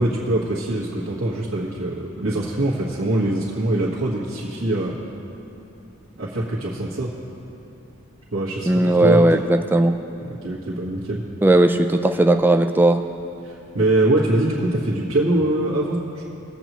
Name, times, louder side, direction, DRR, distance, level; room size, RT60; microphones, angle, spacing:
voice 1, 0.0-5.0 6.2-7.1 8.3-9.4 10.2-11.2 13.4-16.3, right 1 dB, 85° right, -8 dB, 1.5 m, -23 dB
voice 2, 8.7-9.9 11.4-13.0, right 1 dB, 10° right, 6 dB, 0.3 m, -16 dB
20.0 x 8.0 x 3.0 m, 2.8 s
head